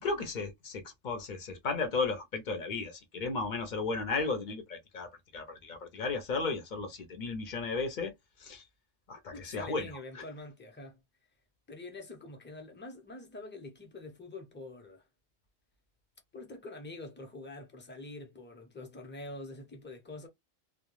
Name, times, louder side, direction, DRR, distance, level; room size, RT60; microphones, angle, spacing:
voice 1, 0.0-8.1 8.4-8.6 9.1-10.2, left 4 dB, 50° left, 0.7 m, -35 dB
voice 2, 9.3-11.0 11.7-15.0 16.3-20.3, left 2 dB, 15° left, 0.5 m, -45 dB
2.3 x 2.2 x 3.0 m
omnidirectional pair, 1.2 m